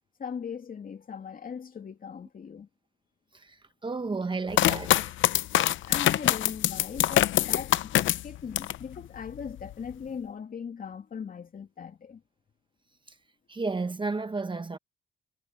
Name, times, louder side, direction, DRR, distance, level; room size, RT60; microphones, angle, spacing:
voice 1, 0.2-2.7 5.9-12.2, left 6 dB, 45° left, 2.8 m, -39 dB
voice 2, 3.3-5.1 5.5-5.6 13.5-14.8, right 3 dB, 25° right, 1.3 m, -32 dB
sound 1, 4.5-8.8 9.3-9.9, left 13 dB, 75° left, 0.8 m, -24 dB
cardioid pair, 90°, 20 cm